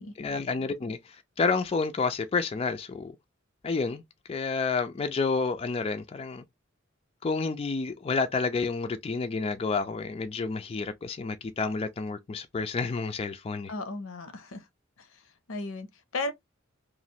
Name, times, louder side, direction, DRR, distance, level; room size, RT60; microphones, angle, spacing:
voice 1, 0.2-3.1 3.6-4.0 4.3-6.4 7.2-13.7, left 4 dB, 30° left, 0.3 m, -30 dB
voice 2, 13.7-14.7 15.0-15.1 15.5-15.9 16.1-16.3, left 2 dB, 80° left, 0.7 m, -34 dB
3.0 x 2.5 x 2.7 m
head